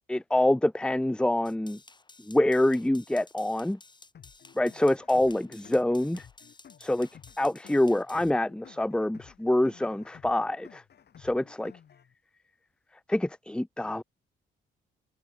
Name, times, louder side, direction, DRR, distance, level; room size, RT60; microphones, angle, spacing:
voice 1, 0.1-1.8 2.3-3.8 4.6-6.3 6.8-7.1 7.4-10.8 11.2-11.7 13.1-14.0, left 1 dB, 5° left, 1.1 m, -26 dB
sound 1, 1.4-8.3, left 3 dB, 20° left, 6.4 m, -54 dB
sound 2, 4.1-12.1, left 8 dB, 55° left, 5.6 m, -54 dB
open air
cardioid pair, 90°, 20 cm